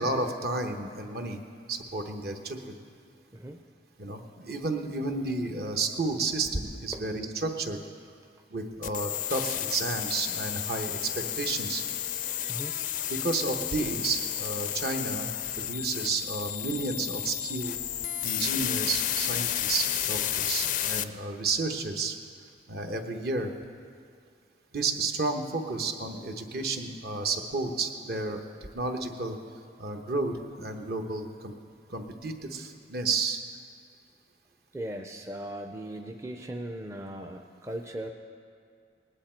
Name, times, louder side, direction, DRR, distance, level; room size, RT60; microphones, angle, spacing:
voice 1, 0.0-1.4 1.7-2.8 4.0-7.8 8.5-11.8 13.1-15.3 15.6-17.7 18.2-22.2 22.7-23.5 24.7-28.4 28.7-29.4 29.8-31.5 31.9-33.4, right 3 dB, 60° right, 5 dB, 1.0 m, -31 dB
sound 1, 8.8-21.0, left 11 dB, 45° left, 0.4 m, -32 dB
voice 2, 34.7-38.1, right 1 dB, 15° right, 3 dB, 0.5 m, -38 dB
19.0 x 9.9 x 4.4 m, 2.3 s
head